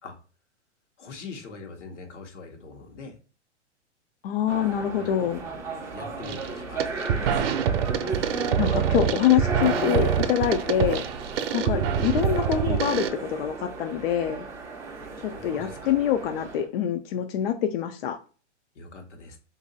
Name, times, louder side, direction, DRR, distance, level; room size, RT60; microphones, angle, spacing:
voice 1, 1.0-3.1 4.9-5.1 5.9-7.4 15.3-15.9 18.7-19.4, left 4 dB, 80° left, 3 dB, 1.1 m, -42 dB
voice 2, 4.2-5.4 8.6-11.1 11.5-14.5 15.2-18.2, left 10 dB, 55° left, 7 dB, 0.4 m, -25 dB
sound 1, 4.5-16.7, right 3 dB, 10° right, 0.4 m, -35 dB
sound 2, 6.2-6.5 6.8-13.1, right 8 dB, 55° right, 0.6 m, -25 dB
2.9 x 2.6 x 3.9 m, 0.36 s
hypercardioid pair, 135°, 35 cm